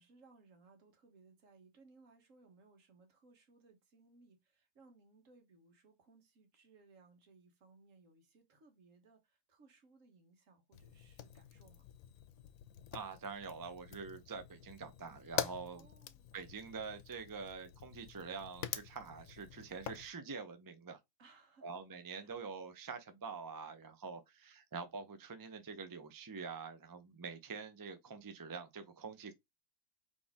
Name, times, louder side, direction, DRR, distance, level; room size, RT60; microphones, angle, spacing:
voice 1, 0.0-11.9 15.7-16.3 21.2-21.7 22.2-22.3, right 3 dB, 65° right, 1.6 m, -64 dB
Fire, 10.7-20.1, left 10 dB, 80° left, 1.0 m, -46 dB
voice 2, 12.9-15.9 16.3-21.0 21.6-29.3, right 5 dB, 30° right, 0.3 m, -46 dB
4.2 x 3.2 x 3.5 m
omnidirectional pair, 1.5 m